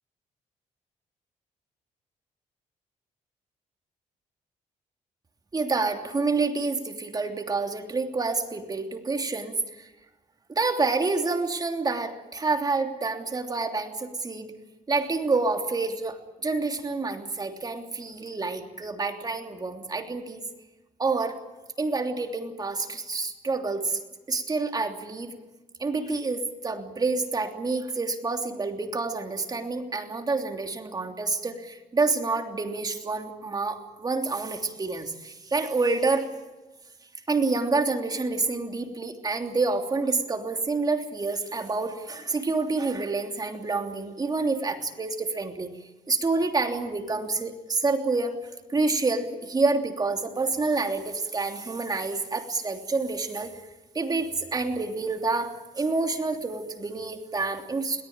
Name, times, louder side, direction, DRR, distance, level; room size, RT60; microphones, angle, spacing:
voice 1, 5.5-9.9 10.5-14.5 14.9-20.4 21.0-21.4 21.8-24.0 24.3-25.3 25.8-36.3 37.3-45.7 46.1-48.3 48.7-53.5 53.9-58.0, right 3 dB, 30° right, 4 dB, 3.1 m, -28 dB
22.0 x 18.5 x 8.9 m, 1.1 s
cardioid pair, 95°, 14 cm